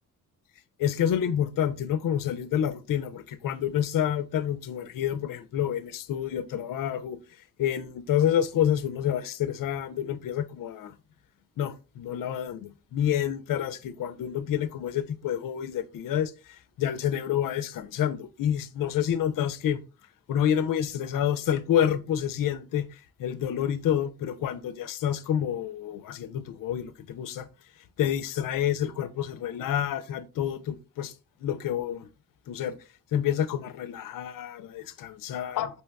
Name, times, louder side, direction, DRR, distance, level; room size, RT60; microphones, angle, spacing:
voice 1, 0.8-7.2 7.6-10.9 11.6-16.3 16.8-19.8 20.3-22.8 23.2-27.5 28.0-31.1 31.4-32.0 32.5-32.8 33.1-35.7, left 10 dB, 65° left, 0.5 m, -28 dB
4.5 x 2.9 x 2.2 m
cardioid pair, 65°, 36 cm